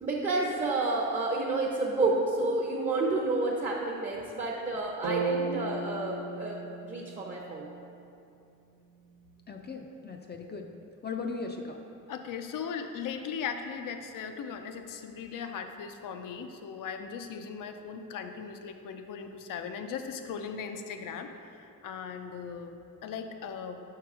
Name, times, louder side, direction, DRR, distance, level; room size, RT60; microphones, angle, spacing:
voice 1, 0.0-6.6 6.8-7.7, right 2 dB, 25° right, -4 dB, 0.7 m, -30 dB
sound 1, 5.0-9.1, right 3 dB, 85° right, 0.7 m, -37 dB
voice 2, 9.5-10.7 11.0-11.8, left 4 dB, 35° left, 3 dB, 0.4 m, -38 dB
voice 3, 12.1-23.8, left 6 dB, 75° left, 6 dB, 0.6 m, -38 dB
5.9 x 4.7 x 4.7 m, 2.8 s
cardioid pair, 115°, 32 cm